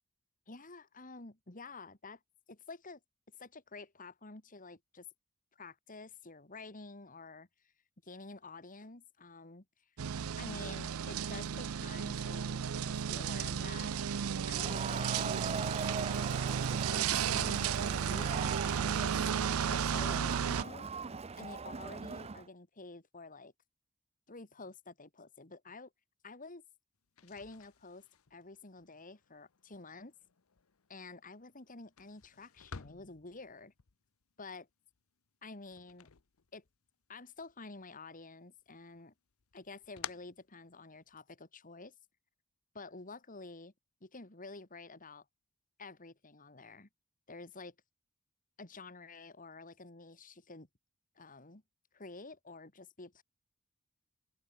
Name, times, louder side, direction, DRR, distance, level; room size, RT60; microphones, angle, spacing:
voice 1, 0.5-2.2 2.5-3.0 3.4-5.1 5.5-7.5 8.0-9.6 10.4-16.5 16.9-19.2 19.7-20.9 21.4-23.5 24.3-25.9 26.2-26.6 27.2-28.0 28.3-30.1 30.9-33.7 34.4-34.7 35.4-36.1 36.5-36.6 37.1-39.1 39.5-41.9 42.7-43.7 44.0-45.2 45.8-46.9 47.3-47.7 48.6-50.7 51.2-51.6 51.9-53.2, left 3 dB, 40° left, 2.4 m, -50 dB
sound 1, 10.0-20.6, right 7 dB, 90° right, 0.5 m, -34 dB
Crowd, 14.5-22.5, right 5 dB, 30° right, 0.7 m, -41 dB
sound 2, 27.0-37.1 37.4-38.2 38.6-41.2, left 7 dB, 80° left, 0.9 m, -53 dB
open air
head